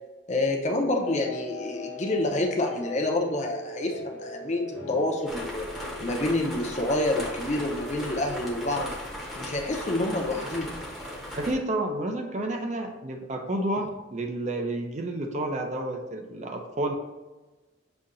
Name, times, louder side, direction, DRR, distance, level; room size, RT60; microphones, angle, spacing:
voice 1, 0.3-5.7 6.0-8.9 9.3-10.8, left 2 dB, 40° left, 2 dB, 0.6 m, -28 dB
sound 1, 1.0-6.2, left 2 dB, 70° left, 1.1 m, -40 dB
sound 2, 5.3-11.5, equal, ahead, 0.8 m, -37 dB
voice 2, 11.4-16.9, right 1 dB, 40° right, 4 dB, 0.5 m, -30 dB
6.9 x 2.8 x 2.5 m, 1.1 s
head